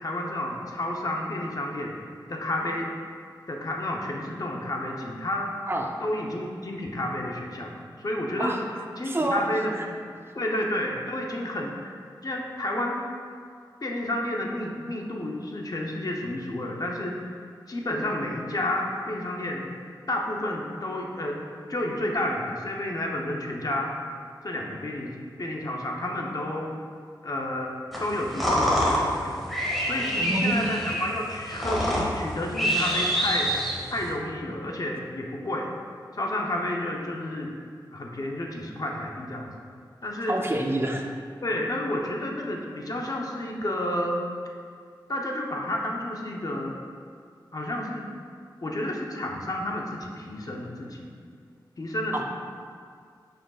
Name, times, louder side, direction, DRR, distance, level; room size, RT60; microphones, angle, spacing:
voice 1, 0.0-2.0 2.3-2.9 3.5-5.6 6.0-8.6 9.0-9.7 10.4-11.9 12.2-13.0 13.8-17.4 17.7-19.7 20.1-23.9 24.4-26.7 27.2-27.7 28.0-29.4 29.9-33.5 33.9-35.7 36.1-37.5 37.9-39.5 40.0-40.4 41.4-44.2 45.1-46.8 47.5-48.0 48.6-51.1 51.8-52.2, left 1 dB, 50° left, 0 dB, 0.8 m, -30 dB
voice 2, 9.0-9.4 9.7-9.8 30.2-30.7 40.3-41.1 52.1-52.2, right 1 dB, 30° right, 1 dB, 0.8 m, -27 dB
sound 1, 27.9-34.1, equal, ahead, 1.6 m, -26 dB
8.7 x 5.1 x 2.4 m, 2.1 s
wide cardioid pair, 60°, 8 cm